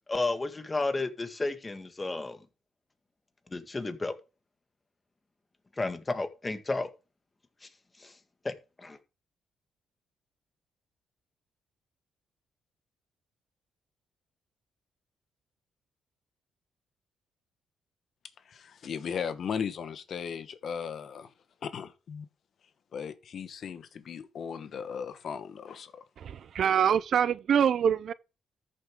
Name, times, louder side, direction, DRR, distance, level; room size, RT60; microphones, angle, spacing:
voice 1, 0.1-2.4 3.5-4.1 5.8-6.9 8.0-8.1 8.4-9.0, left 2 dB, 20° left, 1.7 m, -32 dB
voice 2, 18.5-21.3 21.6-22.3 22.9-26.0, left 7 dB, 55° left, 1.2 m, -37 dB
voice 3, 26.2-28.1, right 8 dB, 60° right, 0.5 m, -25 dB
13.5 x 6.8 x 3.7 m
cardioid pair, 90°, 0 cm